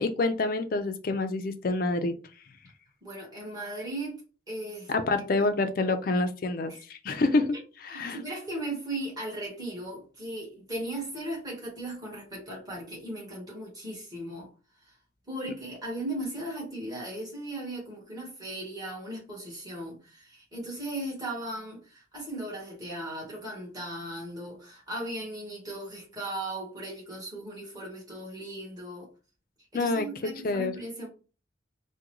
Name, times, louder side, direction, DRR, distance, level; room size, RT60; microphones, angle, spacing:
voice 1, 0.0-2.1 4.9-7.6 7.8-8.2 29.7-30.1 30.4-30.7, left 3 dB, 50° left, 0.4 m, -27 dB
voice 2, 3.0-4.2 4.5-5.5 6.7-6.8 7.9-14.5 15.3-29.1 29.7-31.1, right 1 dB, 20° right, 1.5 m, -37 dB
3.6 x 2.2 x 3.0 m
head